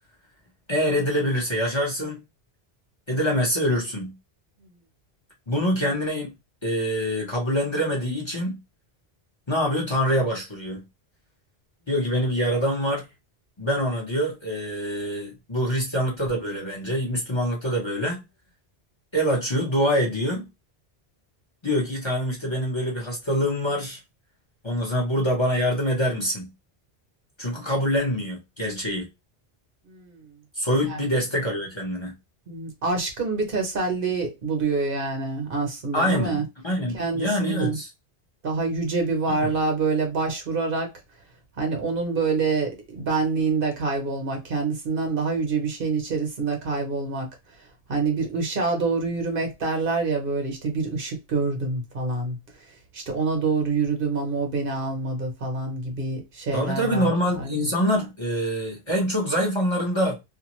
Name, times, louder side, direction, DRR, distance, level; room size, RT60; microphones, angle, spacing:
voice 1, 0.7-2.2 3.1-4.1 5.5-6.3 6.6-8.6 9.5-10.8 11.9-13.1 13.6-18.2 19.1-20.5 21.6-24.0 24.6-26.5 27.4-29.1 30.6-32.1 35.9-37.9 39.3-39.6 56.5-60.2, equal, 30° left, 0.8 m, -25 dB
voice 2, 29.9-30.2 30.9-31.0 32.5-36.4 36.9-37.8 38.4-40.9 41.6-47.3 47.9-52.4 52.9-57.1 57.3-57.7, right 4 dB, 60° right, 1.0 m, -26 dB
2.5 x 2.3 x 3.0 m
omnidirectional pair, 1.1 m